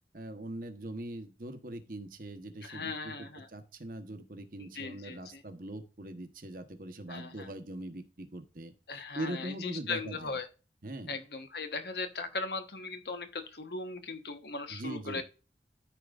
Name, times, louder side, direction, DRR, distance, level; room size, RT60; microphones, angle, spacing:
voice 1, 0.1-10.4 10.8-11.2 14.7-15.2, right 1 dB, 50° right, 8 dB, 1.1 m, -42 dB
voice 2, 2.6-3.5 4.6-5.4 7.1-7.5 8.9-10.5 11.1-15.2, left 3 dB, 65° left, 8 dB, 1.1 m, -38 dB
13.5 x 4.6 x 2.4 m, 0.33 s
head